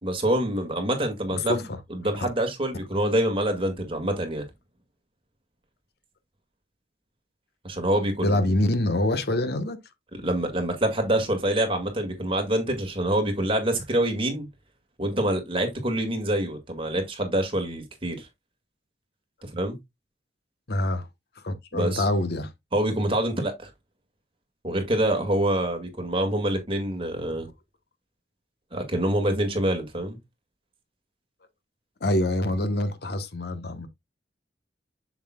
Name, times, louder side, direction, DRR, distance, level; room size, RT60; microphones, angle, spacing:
voice 1, 0.0-1.6 1.9-4.4 7.6-8.6 10.2-14.5 15.0-18.3 19.4-19.8 21.7-22.0 22.7-23.7 24.6-27.5 28.7-30.2, right 1 dB, 30° right, 1.9 m, -26 dB
voice 2, 1.3-1.8 2.2-2.3 8.2-9.8 20.7-21.1 21.4-22.5 32.0-33.9, left 1 dB, 65° left, 1.0 m, -25 dB
7.1 x 7.1 x 2.2 m
head